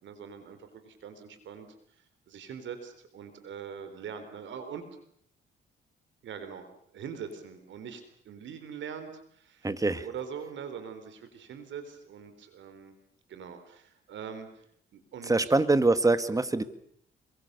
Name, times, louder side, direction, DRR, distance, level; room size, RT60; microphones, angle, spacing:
voice 1, 0.0-1.7 2.0-4.9 6.2-6.7 6.9-9.7 10.0-13.0 13.3-14.6 14.9-15.5, right 7 dB, 70° right, 9 dB, 4.0 m, -42 dB
voice 2, 9.6-10.1 15.2-16.6, right 2 dB, 15° right, 12 dB, 2.0 m, -24 dB
28.5 x 23.5 x 6.9 m, 0.67 s
cardioid pair, 90°, 20 cm